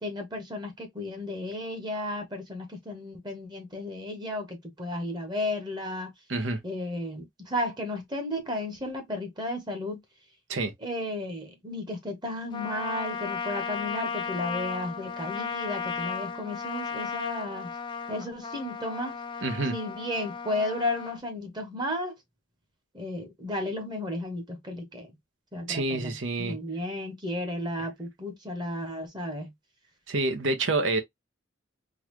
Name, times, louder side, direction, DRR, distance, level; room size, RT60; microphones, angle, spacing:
voice 1, 0.0-6.1 6.6-10.0 10.8-17.7 18.1-19.2 19.7-22.2 22.9-25.1 25.5-26.1 26.4-29.5, left 1 dB, 20° right, 1.0 m, -33 dB
voice 2, 6.3-6.6 10.5-10.7 19.4-19.7 25.7-26.6 27.8-27.9 30.1-31.0, right 2 dB, 75° right, 0.9 m, -27 dB
Trumpet, 12.5-21.2, left 6 dB, 25° left, 0.4 m, -35 dB
3.9 x 2.4 x 3.0 m
head